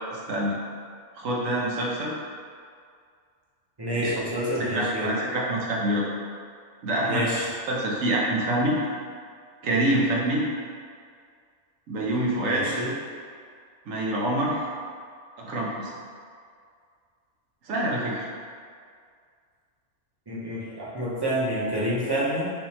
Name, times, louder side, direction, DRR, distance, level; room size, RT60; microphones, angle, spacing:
voice 1, 0.1-0.6 1.2-2.1 3.9-4.1 4.6-6.1 6.8-7.3 7.7-8.8 9.6-10.5 11.9-12.7 13.9-14.6 15.4-15.9 17.7-18.2, right 1 dB, 90° right, -3 dB, 1.2 m, -26 dB
voice 2, 3.8-5.2 7.0-7.5 12.5-12.9 20.3-22.5, equal, 25° right, -7 dB, 0.6 m, -28 dB
4.3 x 3.5 x 2.9 m, 2.2 s
omnidirectional pair, 1.3 m